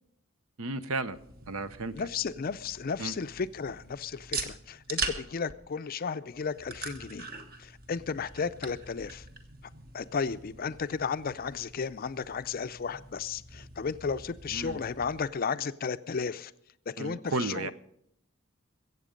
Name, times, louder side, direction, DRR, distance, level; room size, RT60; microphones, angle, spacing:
voice 1, 0.6-1.2 1.5-2.1 3.0-3.1 14.5-14.8 17.0-17.7, right 3 dB, 75° right, 0.8 m, -33 dB
sound 1, 1.0-15.3, right 4 dB, 45° right, 1.3 m, -42 dB
voice 2, 1.9-7.3 7.6-9.2 9.9-16.5 16.9-17.7, left 5 dB, 45° left, 0.4 m, -34 dB
22.5 x 8.3 x 5.2 m
head